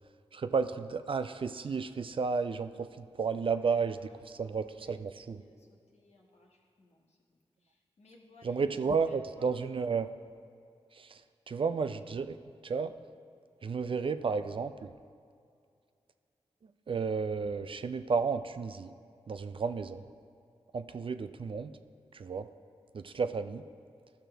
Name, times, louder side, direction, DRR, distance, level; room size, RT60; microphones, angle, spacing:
voice 1, 0.3-4.0 4.3-5.4 8.4-10.1 10.9-11.2 11.5-12.4 12.6-12.9 13.6-14.9 16.9-18.9 19.3-20.0 20.7-21.7 22.1-22.5 22.9-23.6, right 5 dB, 50° right, 10 dB, 0.4 m, -32 dB
voice 2, 3.4-9.8, left 2 dB, 75° left, -1 dB, 1.3 m, -61 dB
12.5 x 6.0 x 3.4 m, 2.4 s
cardioid pair, 45°, 11 cm